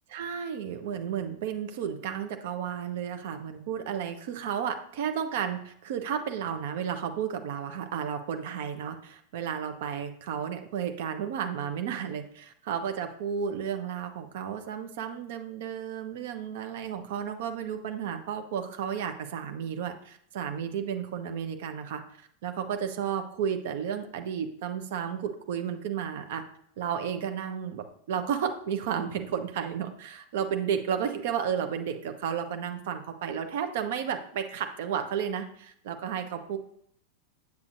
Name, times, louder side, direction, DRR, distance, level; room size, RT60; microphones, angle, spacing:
voice 1, 0.1-22.0 22.4-26.4 26.8-36.6, right 8 dB, 55° right, 7 dB, 0.9 m, -32 dB
8.4 x 8.3 x 2.6 m, 0.66 s
figure-of-eight pair, 90°, 0 cm